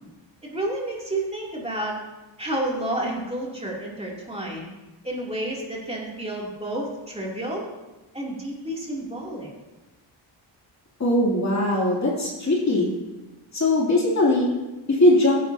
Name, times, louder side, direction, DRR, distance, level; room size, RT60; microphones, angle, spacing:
voice 1, 0.4-2.0 2.4-4.7 5.0-7.7 8.1-9.5, right 1 dB, 15° right, -4 dB, 2.8 m, -30 dB
voice 2, 11.0-12.9 13.5-14.5 15.0-15.4, left 1 dB, 35° left, -4 dB, 2.8 m, -20 dB
17.0 x 10.5 x 2.8 m, 1.1 s
wide cardioid pair, 135°, 48 cm